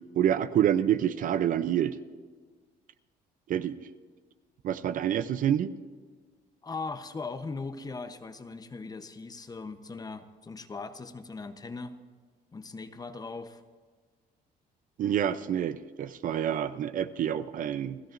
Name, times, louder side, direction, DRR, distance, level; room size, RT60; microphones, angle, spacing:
voice 1, 0.2-2.0 3.5-3.8 4.6-5.7 15.0-18.0, right 10 dB, 55° right, 13 dB, 0.6 m, -27 dB
voice 2, 6.6-12.0 12.5-13.6, left 4 dB, 20° left, 9 dB, 0.8 m, -39 dB
29.5 x 13.0 x 2.6 m, 1.5 s
cardioid pair, 110°, 17 cm